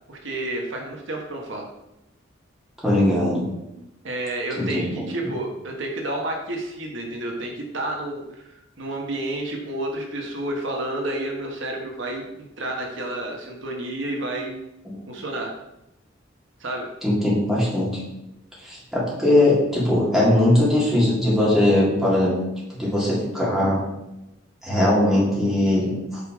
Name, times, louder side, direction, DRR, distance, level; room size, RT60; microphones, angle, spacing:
voice 1, 0.1-1.7 4.0-14.6 15.1-15.5 16.6-16.9, right 1 dB, 65° right, 1 dB, 1.4 m, -30 dB
voice 2, 2.8-3.5 4.6-5.0 14.8-14.9 17.0-17.9 18.6-22.3 22.8-23.8 24.6-26.2, left 1 dB, ahead, -7 dB, 3.2 m, -20 dB
9.1 x 4.9 x 5.1 m, 0.91 s
head